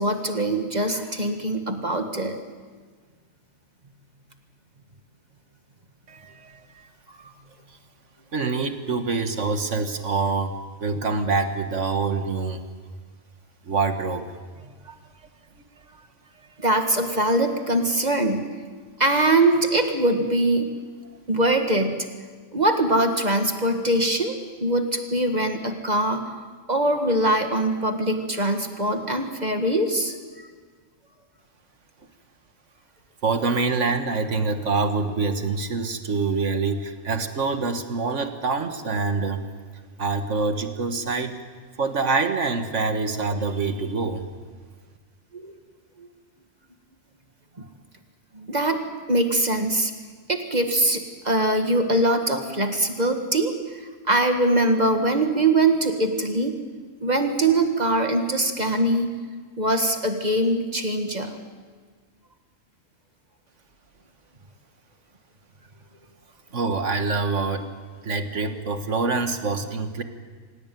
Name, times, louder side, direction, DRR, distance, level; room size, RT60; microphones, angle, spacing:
voice 1, 0.0-2.4 16.6-18.5 19.0-20.7 21.3-22.1 22.5-26.4 26.7-30.2 45.3-45.5 46.0-46.1 48.3-48.8 49.1-49.9 50.3-56.5 57.0-59.2 59.6-61.4, right 1 dB, 35° right, 5 dB, 1.9 m, -22 dB
voice 2, 6.1-6.8 8.3-12.6 13.7-14.3 14.9-15.0 15.9-16.0 33.2-39.4 40.0-41.4 41.8-44.3 66.5-67.7 68.0-70.0, right 4 dB, 85° right, 7 dB, 2.0 m, -25 dB
26.0 x 17.0 x 9.4 m, 1.5 s
omnidirectional pair, 1.2 m